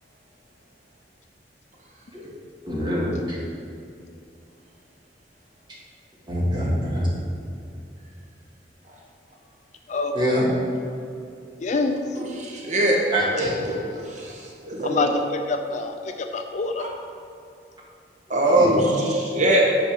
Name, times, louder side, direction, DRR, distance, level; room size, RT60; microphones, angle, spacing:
voice 1, 2.7-3.4 6.3-7.1 10.1-10.5 13.1-13.6 18.5-18.8, equal, 25° right, -6 dB, 2.0 m, -25 dB
voice 2, 9.9-10.4 11.6-12.0 14.8-16.9, left 3 dB, 45° left, 6 dB, 0.5 m, -26 dB
voice 3, 12.1-13.1 13.3-13.8 14.1-15.1 16.8-16.9 18.3-19.8, right 1 dB, 45° right, -1 dB, 1.2 m, -22 dB
8.6 x 4.3 x 6.0 m, 2.6 s
head